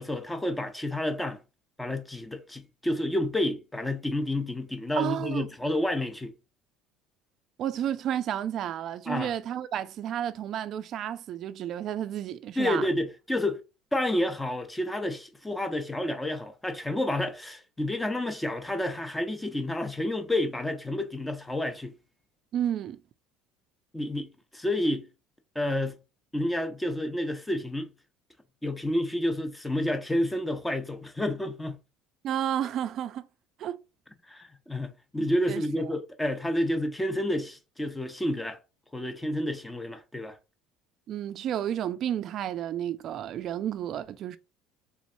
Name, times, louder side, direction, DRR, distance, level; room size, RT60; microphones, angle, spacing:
voice 1, 0.0-1.4 1.8-6.3 9.1-9.3 12.6-13.6 13.9-21.9 23.9-25.1 25.6-26.0 26.3-27.9 28.6-31.8 34.3-38.6 38.9-40.4, left 1 dB, 10° left, 0.6 m, -30 dB
voice 2, 5.0-5.5 7.6-12.9 22.5-23.0 32.2-33.2 33.6-33.8 35.5-35.6 41.1-44.4, right 10 dB, 50° right, 0.3 m, -31 dB
3.5 x 3.0 x 2.6 m
supercardioid pair, 110°, 0 cm